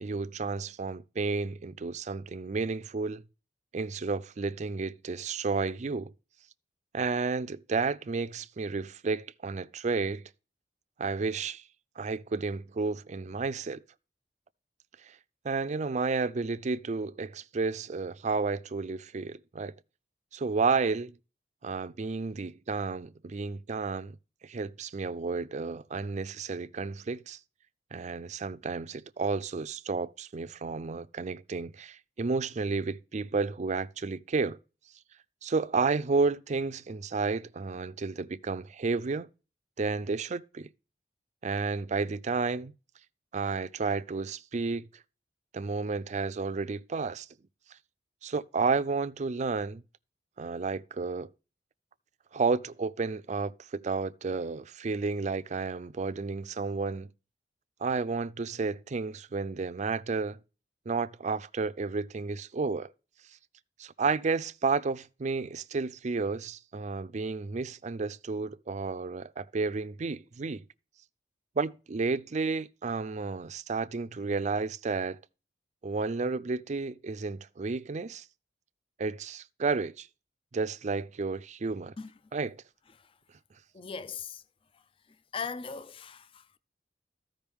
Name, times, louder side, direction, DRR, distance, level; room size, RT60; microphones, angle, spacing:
voice 1, 0.0-3.2 3.7-6.1 6.9-10.2 11.0-11.6 12.0-13.8 15.0-15.2 15.4-19.7 20.3-21.1 21.6-24.2 24.4-27.4 27.9-34.6 35.4-39.3 39.8-40.7 41.4-42.7 43.3-44.9 45.5-47.3 48.2-49.8 50.4-51.3 52.3-57.1 57.8-60.4 60.9-62.9 63.8-70.6 71.6-75.2 75.8-78.2 79.0-80.1 80.5-81.9 82.3-82.6, right 4 dB, 40° right, 0.5 m, -31 dB
voice 2, 83.7-84.4 85.3-86.6, left 5 dB, 30° left, 0.4 m, -39 dB
14.0 x 5.2 x 3.5 m
head